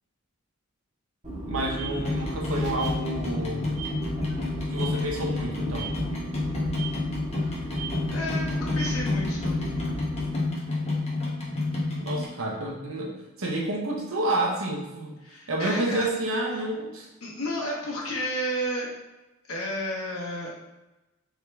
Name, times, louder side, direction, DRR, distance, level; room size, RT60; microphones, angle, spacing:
sound 1, 1.2-10.3, right 1 dB, 35° right, 1.3 m, -35 dB
voice 1, 1.5-3.6 4.7-6.0 10.8-10.9 12.0-15.2 15.5-17.1, right 1 dB, 70° right, -1 dB, 0.8 m, -29 dB
sound 2, 1.9-12.3, left 2 dB, 30° left, 0.9 m, -30 dB
voice 2, 8.1-9.6 15.2-16.1 17.2-18.9 19.5-20.5, equal, 85° left, -4 dB, 1.1 m, -32 dB
3.7 x 3.2 x 3.4 m, 1.0 s
head